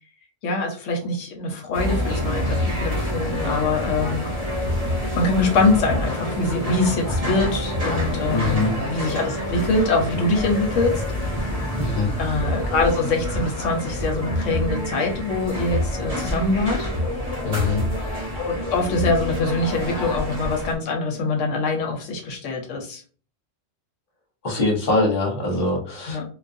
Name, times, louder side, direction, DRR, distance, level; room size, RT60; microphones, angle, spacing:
voice 1, 0.4-4.3 5.2-11.0 12.2-16.9 18.3-23.0 26.1-26.2, left 3 dB, 75° left, 3 dB, 0.9 m, -24 dB
sound 1, 1.7-20.7, equal, 35° right, 0.8 m, -27 dB
voice 2, 8.3-8.7 11.8-12.1 17.4-17.8 24.4-26.2, left 2 dB, 50° left, 0 dB, 0.9 m, -23 dB
2.4 x 2.3 x 2.5 m, 0.41 s
omnidirectional pair, 1.4 m